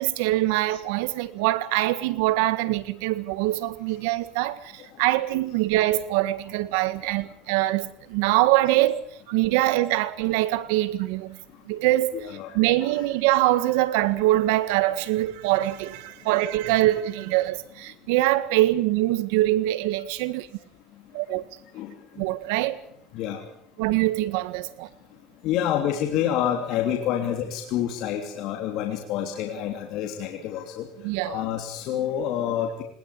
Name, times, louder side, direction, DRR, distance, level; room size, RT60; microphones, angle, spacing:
voice 1, 0.0-11.4 11.7-12.3 12.5-20.5 21.1-21.4 22.2-22.8 23.8-24.9 31.0-31.4, right 16 dB, 80° right, 1.8 m, -24 dB
voice 2, 12.1-12.6 21.7-22.3 23.1-23.4 25.4-30.9 31.2-32.8, left 10 dB, 60° left, 3.1 m, -28 dB
20.0 x 20.0 x 8.5 m
supercardioid pair, 120°, 0 cm